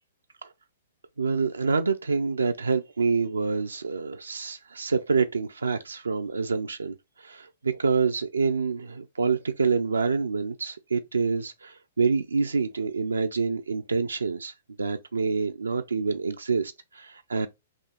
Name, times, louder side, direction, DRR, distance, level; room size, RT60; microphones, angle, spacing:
voice 1, 1.2-14.5 14.8-17.5, right 4 dB, 90° right, 0.3 m, -27 dB
3.6 x 2.4 x 4.1 m
hypercardioid pair, 115°, 0 cm